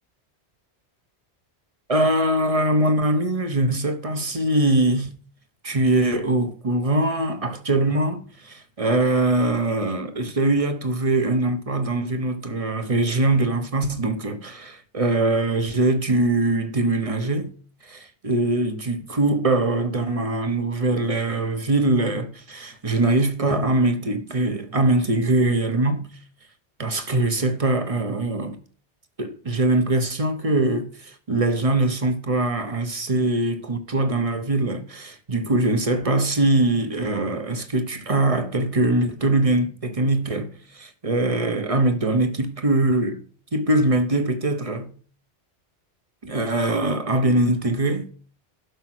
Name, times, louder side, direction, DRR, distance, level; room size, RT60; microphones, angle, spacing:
voice 1, 1.9-5.1 5.6-17.5 17.9-26.1 26.8-28.6 29.2-43.2 43.5-44.9 46.2-48.1, right 2 dB, 30° right, 1.3 m, -22 dB
11.5 x 6.1 x 6.2 m
omnidirectional pair, 1.1 m